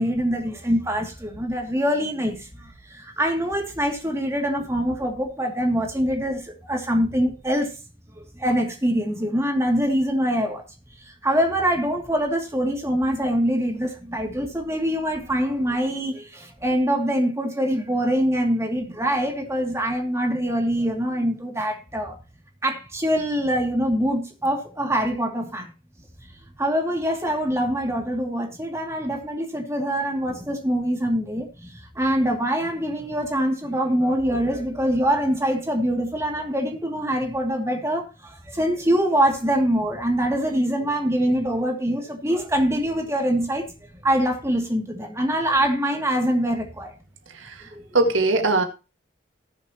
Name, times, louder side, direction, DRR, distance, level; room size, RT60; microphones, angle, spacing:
voice 1, 0.0-7.8 8.2-10.6 11.0-22.2 22.6-25.7 26.2-26.3 26.6-43.7 43.9-46.9 47.7-47.8, equal, 15° right, 2.6 m, -24 dB
voice 2, 47.3-48.6, right 2 dB, 80° right, 1.9 m, -22 dB
19.5 x 7.2 x 3.0 m
head